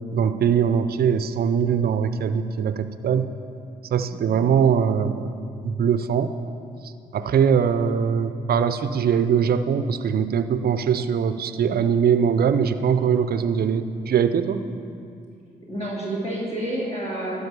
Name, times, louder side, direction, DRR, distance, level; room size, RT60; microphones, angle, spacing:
voice 1, 0.1-3.3 3.9-5.3 5.6-6.3 7.1-14.6, right 7 dB, 55° right, 11 dB, 0.5 m, -21 dB
voice 2, 4.1-4.4 14.7-15.0 15.7-17.5, right 1 dB, 35° left, -5 dB, 2.7 m, -30 dB
12.0 x 5.0 x 6.9 m, 2.4 s
hypercardioid pair, 45°, 19 cm